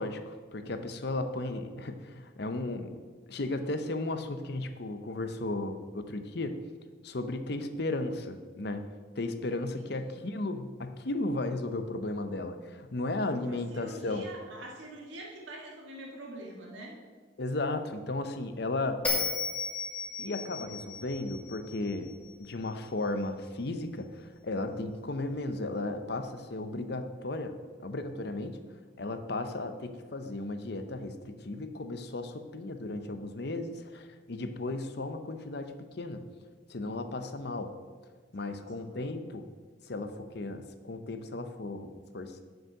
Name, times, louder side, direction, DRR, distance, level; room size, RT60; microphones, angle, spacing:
voice 1, 0.0-3.0 3.3-6.6 7.0-8.9 9.1-14.3 17.4-19.0 20.2-22.1 22.4-28.6 29.0-36.2 36.7-37.7 38.3-39.5 39.8-42.4, left 2 dB, 55° left, 8 dB, 0.8 m, -35 dB
voice 2, 9.8-10.2 13.5-17.0 38.4-39.1, right 1 dB, 75° right, -2 dB, 1.8 m, -46 dB
Bell, 19.0-22.3, left 4 dB, 5° left, 2.5 m, -34 dB
7.2 x 6.4 x 7.8 m, 1.5 s
head